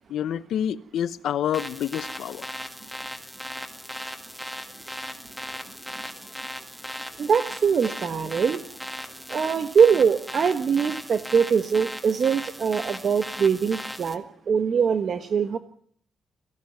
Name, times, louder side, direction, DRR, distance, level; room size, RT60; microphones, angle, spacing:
voice 1, 0.1-2.4, left 10 dB, 75° left, 1.0 m, -28 dB
sound 1, 1.5-14.2, equal, ahead, 1.9 m, -37 dB
voice 2, 7.2-8.6 9.3-15.6, right 6 dB, 45° right, 1.3 m, -22 dB
23.5 x 16.5 x 9.3 m
cardioid pair, 150°, 0 cm